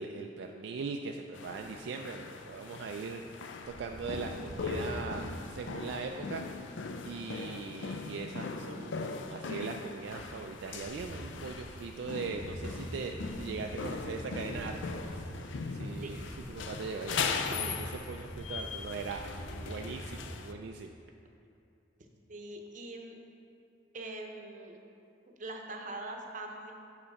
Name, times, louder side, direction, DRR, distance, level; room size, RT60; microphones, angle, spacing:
voice 1, 0.0-6.4 7.0-15.2 15.7-17.7 18.1-19.2 19.5-20.9, right 4 dB, 65° right, 3 dB, 0.3 m, -40 dB
sound 1, 1.3-20.5, left 4 dB, 75° left, 0.4 m, -40 dB
sound 2, 3.6-6.0 6.3-8.1 8.5-8.7 9.0-9.4 9.6-20.2, equal, 15° left, 1.3 m, -45 dB
voice 2, 22.3-23.2 23.9-24.8 25.3-26.7, right 2 dB, 45° right, 2 dB, 0.7 m, -42 dB
7.5 x 5.6 x 4.1 m, 2.7 s
head